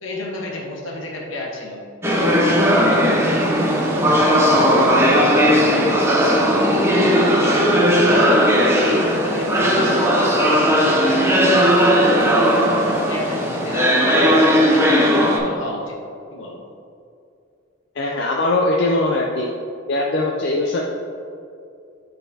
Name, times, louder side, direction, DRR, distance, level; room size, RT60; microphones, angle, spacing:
voice 1, 0.0-1.8 2.1-5.0 5.3-8.2 8.6-11.9 12.3-16.0 16.3-16.6, left 1 dB, 75° left, -2 dB, 1.1 m, -31 dB
sound 1, 2.0-15.4, equal, 10° right, 0.6 m, -16 dB
voice 2, 18.0-19.5 19.9-20.8, left 2 dB, 55° left, -1 dB, 0.4 m, -20 dB
9.0 x 3.9 x 2.7 m, 2.5 s
head